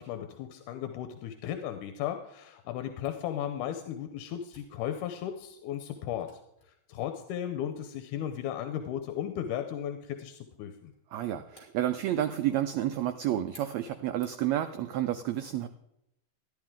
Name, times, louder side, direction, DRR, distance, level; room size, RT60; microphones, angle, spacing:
voice 1, 0.0-6.3 6.7-10.9, left 10 dB, 85° left, 7 dB, 2.2 m, -35 dB
Camera, 3.0-14.6, left 2 dB, 25° left, 3.5 m, -62 dB
voice 2, 11.1-15.7, right 12 dB, 85° right, 9 dB, 1.5 m, -30 dB
13.5 x 10.5 x 3.7 m, 0.82 s
omnidirectional pair, 3.7 m